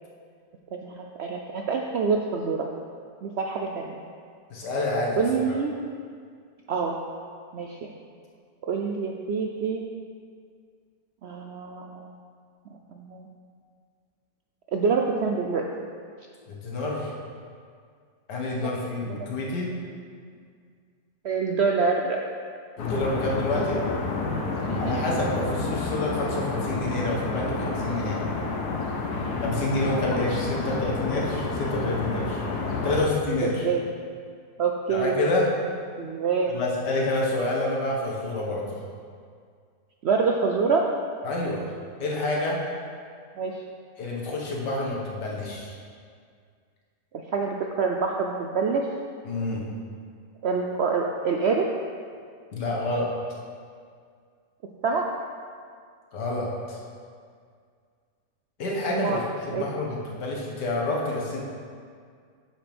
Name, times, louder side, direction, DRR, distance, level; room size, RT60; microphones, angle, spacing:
voice 1, 0.7-2.7 3.2-3.9 5.2-5.7 6.7-7.0 7.5-7.9 8.7-9.8 11.2-12.1 12.9-13.3 14.7-15.7 19.0-19.3 21.2-22.2 24.7-25.2 30.5-30.8 32.9-33.0 33.6-33.8 34.6-35.1 36.0-36.6 40.0-40.9 43.4-43.5 47.3-48.8 50.4-51.6 54.8-55.0 58.9-59.2 59.5-59.7, right 5 dB, 85° right, 1 dB, 0.5 m, -26 dB
voice 2, 4.5-5.2 16.5-17.1 18.3-19.7 22.8-23.8 24.8-28.2 29.4-32.4 32.8-33.7 34.9-35.5 36.5-38.7 41.2-41.6 42.0-42.6 44.0-45.7 49.3-49.7 52.5-53.1 56.1-56.8 58.6-59.2 59.5-61.4, left 2 dB, 90° left, -3 dB, 1.9 m, -28 dB
sound 1, 22.8-33.0, left 3 dB, 70° left, 1.4 m, -29 dB
8.9 x 7.4 x 3.5 m, 2.1 s
omnidirectional pair, 1.7 m